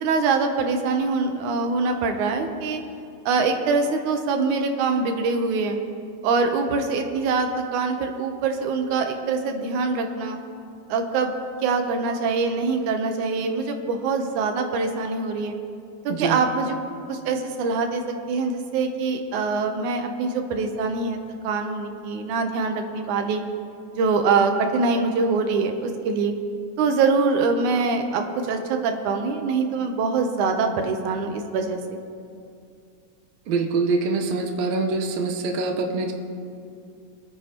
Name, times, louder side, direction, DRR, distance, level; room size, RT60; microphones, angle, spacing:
voice 1, 0.0-2.8 3.3-5.8 6.2-10.4 10.9-11.3 11.6-15.6 16.1-16.8 17.1-23.4 23.9-26.3 26.8-32.0, right 4 dB, 90° right, 5 dB, 2.4 m, -24 dB
voice 2, 16.1-16.4 33.5-36.1, right 3 dB, 70° right, 2 dB, 2.1 m, -24 dB
24.0 x 9.3 x 2.9 m, 2.4 s
omnidirectional pair, 3.4 m